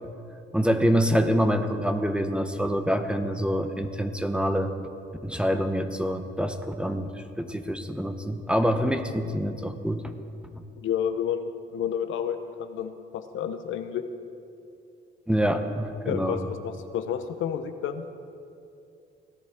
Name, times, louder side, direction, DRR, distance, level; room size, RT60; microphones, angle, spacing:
voice 1, 0.5-4.7 5.2-10.1 15.3-16.4, equal, 5° right, 7 dB, 0.8 m, -26 dB
voice 2, 10.8-14.0 16.0-18.0, left 8 dB, 80° left, 9 dB, 0.8 m, -30 dB
17.5 x 11.0 x 3.6 m, 2.6 s
cardioid pair, 90°, 20 cm